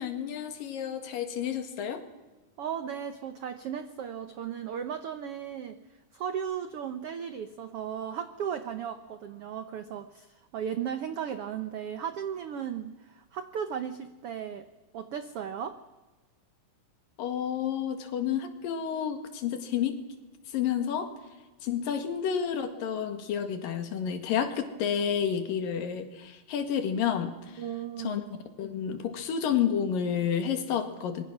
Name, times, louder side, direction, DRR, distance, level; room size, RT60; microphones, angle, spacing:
voice 1, 0.0-2.0 17.2-20.0 20.5-21.1 21.6-27.6 28.0-28.2 28.6-31.2, left 8 dB, 75° left, 7 dB, 3.5 m, -30 dB
voice 2, 2.6-5.8 6.1-14.6 14.9-15.8 27.6-28.2, right 8 dB, 85° right, 10 dB, 1.3 m, -36 dB
25.0 x 23.0 x 6.1 m, 1.2 s
omnidirectional pair, 4.0 m